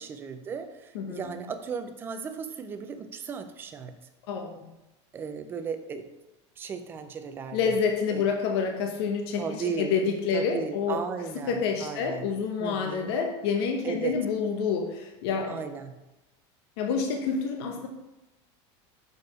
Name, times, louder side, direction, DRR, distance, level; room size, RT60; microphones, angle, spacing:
voice 1, 0.0-3.9 5.1-6.1 6.6-7.6 8.1-8.3 9.3-10.0 10.3-12.3 12.6-13.2 13.8-14.2 15.5-15.9, right 6 dB, 15° right, 8 dB, 0.4 m, -36 dB
voice 2, 0.9-1.4 4.3-4.5 7.5-11.0 11.4-15.6 16.8-17.9, left 5 dB, 60° left, 3 dB, 0.9 m, -28 dB
6.5 x 4.7 x 4.8 m, 1.0 s
supercardioid pair, 175°, 15 cm